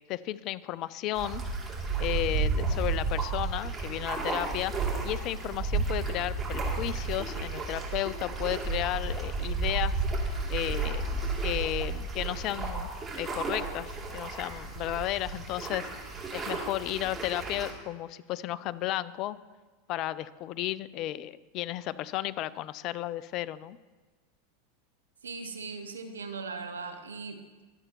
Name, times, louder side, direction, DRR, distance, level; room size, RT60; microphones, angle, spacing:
voice 1, 0.1-1.4 2.0-4.7 5.0-10.0 10.5-11.0 11.4-12.9 13.2-19.4 19.9-23.8, left 14 dB, 50° left, 18 dB, 0.5 m, -33 dB
sound 1, 1.1-17.7, right 4 dB, 20° right, 2.8 m, -32 dB
voice 2, 25.2-27.4, right 4 dB, 85° right, 7 dB, 1.1 m, -39 dB
23.5 x 7.9 x 3.0 m, 1.3 s
hypercardioid pair, 90°, 0 cm